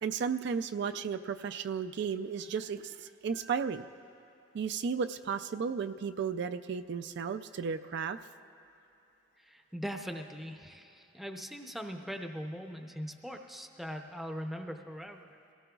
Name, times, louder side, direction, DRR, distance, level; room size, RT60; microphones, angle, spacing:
voice 1, 0.0-3.9 4.5-8.2, right 6 dB, 60° right, 9 dB, 0.3 m, -34 dB
voice 2, 9.4-15.4, equal, ahead, 3 dB, 0.6 m, -41 dB
23.0 x 17.5 x 2.3 m, 2.8 s
head